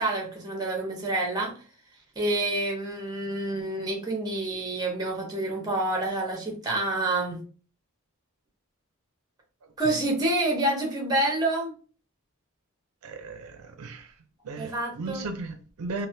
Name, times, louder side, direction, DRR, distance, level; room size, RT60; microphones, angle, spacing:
voice 1, 0.0-1.5 2.2-7.4 9.8-11.7 14.6-15.3, right 2 dB, 20° right, 0.8 m, -28 dB
voice 2, 13.0-14.1 14.4-16.1, right 3 dB, 80° right, 0.4 m, -36 dB
3.3 x 2.1 x 2.7 m
head